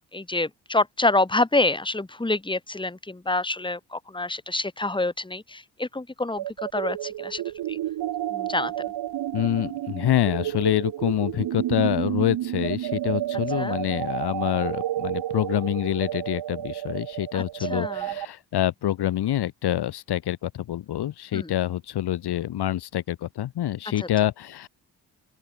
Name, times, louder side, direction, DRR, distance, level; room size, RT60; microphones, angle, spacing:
voice 1, 0.1-6.4 6.7-7.4 7.7-7.8 8.3-8.7 13.6-13.8 17.3-17.4 17.7-18.1 21.3-21.5 24.0-24.1, left 2 dB, 10° left, 2.5 m, -27 dB
sound 1, 6.4-18.3, right 13 dB, 70° right, 1.7 m, -30 dB
voice 2, 9.3-24.7, left 12 dB, 70° left, 2.7 m, -26 dB
open air
supercardioid pair, 55°, 41 cm